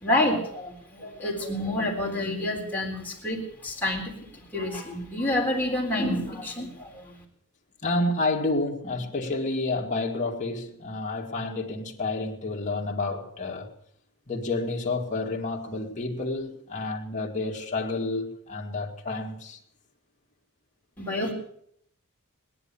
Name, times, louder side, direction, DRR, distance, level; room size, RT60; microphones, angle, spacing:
voice 1, 0.0-7.2 21.0-21.3, left 1 dB, 10° left, 3.7 m, -28 dB
voice 2, 7.8-13.7 14.3-19.6, left 2 dB, 35° left, 2.3 m, -29 dB
18.0 x 11.0 x 7.1 m
head